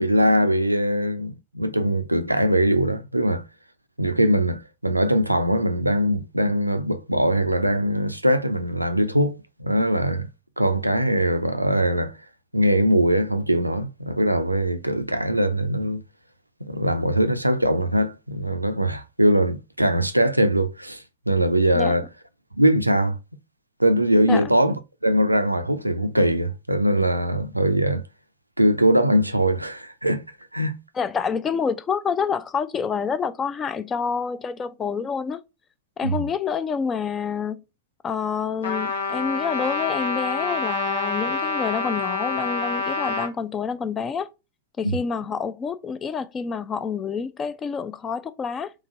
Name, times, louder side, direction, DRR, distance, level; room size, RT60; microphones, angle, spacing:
voice 1, 0.0-3.4 4.0-10.3 10.6-12.1 12.5-16.0 16.7-21.0 21.3-22.1 22.6-23.2 23.8-24.8 25.0-28.0 28.6-30.2 30.5-30.8 36.0-36.2 44.8-45.0, right 1 dB, 85° right, 0.4 m, -21 dB
voice 2, 30.9-35.4 36.0-37.6 38.0-44.3 44.8-48.7, left 6 dB, 20° left, 0.4 m, -28 dB
Trumpet, 38.6-43.3, left 4 dB, 65° left, 0.8 m, -27 dB
3.8 x 2.9 x 2.5 m
figure-of-eight pair, 90°, 0 cm